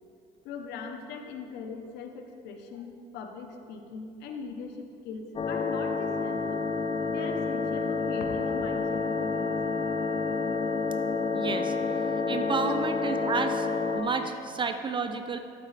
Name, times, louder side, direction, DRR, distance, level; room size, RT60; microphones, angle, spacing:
voice 1, 0.4-6.7 7.1-9.8 12.7-12.8, left 4 dB, 85° left, 5 dB, 0.8 m, -40 dB
sound 1, 5.4-14.0, left 4 dB, 35° left, 0.6 m, -29 dB
voice 2, 11.3-15.4, right 4 dB, 30° right, 7 dB, 0.4 m, -31 dB
12.5 x 4.6 x 3.3 m, 2.5 s
cardioid pair, 110°, 17 cm